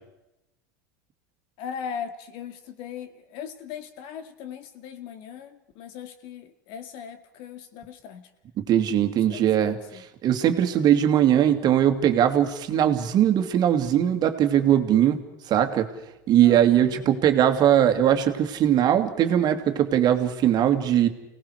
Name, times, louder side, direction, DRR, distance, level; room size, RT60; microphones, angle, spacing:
voice 1, 1.6-8.3 9.3-10.0 16.4-17.1, left 8 dB, 60° left, 8 dB, 2.3 m, -39 dB
voice 2, 8.7-9.8 10.2-15.9 16.3-21.1, right 10 dB, 45° right, 7 dB, 2.4 m, -20 dB
29.0 x 18.5 x 4.9 m, 0.90 s
hypercardioid pair, 95°, 10 cm